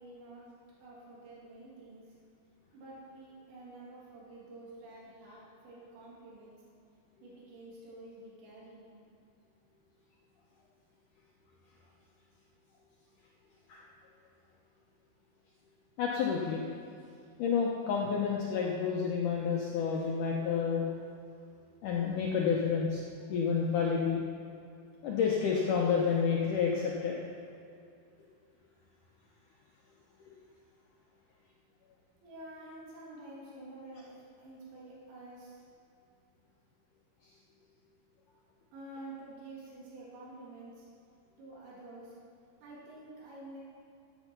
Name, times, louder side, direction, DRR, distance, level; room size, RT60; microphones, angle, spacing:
voice 1, 0.0-2.1 2.7-6.5 7.2-8.9 32.2-35.6 38.7-40.9 41.4-42.2 42.6-43.6, right 2 dB, 80° right, -7 dB, 5.0 m, -49 dB
voice 2, 16.0-16.6 17.4-20.9 21.8-23.0 23.3-24.2 25.0-27.2, left 6 dB, 85° left, -2 dB, 1.8 m, -29 dB
12.5 x 10.0 x 6.0 m, 2.5 s
omnidirectional pair, 5.1 m